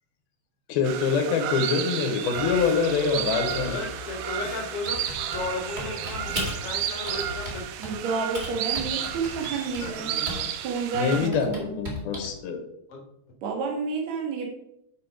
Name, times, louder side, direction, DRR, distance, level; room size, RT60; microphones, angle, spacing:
voice 1, 0.7-3.8 10.9-12.6, left 5 dB, 80° left, 5 dB, 3.1 m, -25 dB
sound 1, 0.8-11.3, right 10 dB, 80° right, 2.0 m, -32 dB
sound 2, 2.3-7.5, equal, 40° right, 4.2 m, -42 dB
voice 2, 3.5-5.0 5.2-7.6 9.8-10.4 12.9-13.0, left 3 dB, 50° left, 1 dB, 2.0 m, -35 dB
Typing, 4.8-6.7 7.1-8.0 8.3-10.6 10.9-12.4, equal, 25° right, 1.1 m, -36 dB
voice 3, 7.8-10.1 10.6-11.7 13.4-14.5, right 5 dB, 55° right, 0 dB, 2.3 m, -30 dB
8.6 x 6.1 x 4.8 m, 0.79 s
omnidirectional pair, 4.4 m